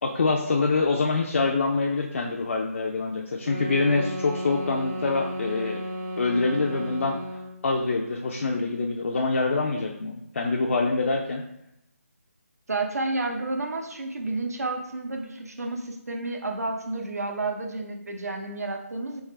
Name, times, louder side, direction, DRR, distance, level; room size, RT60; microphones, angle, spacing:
voice 1, 0.0-5.8 6.2-7.2 7.6-11.4, left 3 dB, 55° left, 0 dB, 0.4 m, -25 dB
sound 1, 3.4-7.6, equal, 35° right, 0.8 m, -33 dB
voice 2, 12.7-19.2, right 2 dB, 80° right, 2 dB, 0.8 m, -31 dB
3.6 x 3.1 x 3.2 m, 0.80 s
figure-of-eight pair, 160°, 8 cm